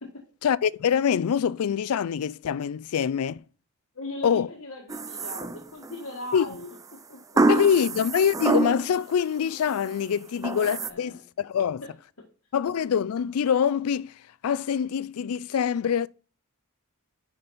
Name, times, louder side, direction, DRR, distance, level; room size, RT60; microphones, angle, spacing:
voice 1, 0.4-3.4 4.2-4.5 6.3-6.5 7.5-11.8 12.5-14.1 14.4-16.1, left 7 dB, 85° left, 0.4 m, -25 dB
voice 2, 3.9-7.9 10.8-11.2 11.8-11.9 12.2-12.3, left 2 dB, 70° left, 1.5 m, -40 dB
sound 1, 4.9-6.0 7.4-9.0 9.4-9.9 10.4-10.9, right 2 dB, 15° right, 0.4 m, -26 dB
9.9 x 5.2 x 4.1 m
head